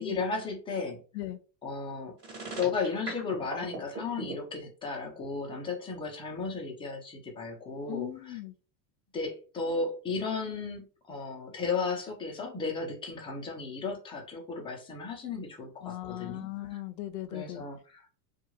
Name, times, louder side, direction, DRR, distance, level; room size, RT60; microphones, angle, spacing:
voice 1, 0.0-1.0 1.6-2.2 2.6-8.4 9.1-16.5 17.3-18.0, left 4 dB, 10° left, 0.5 m, -34 dB
sound 1, 2.2-4.3, right 3 dB, 30° right, 1.4 m, -38 dB
voice 2, 7.9-8.5 15.8-17.6, left 15 dB, 80° left, 0.6 m, -38 dB
2.4 x 2.3 x 3.0 m
supercardioid pair, 135°, 50 cm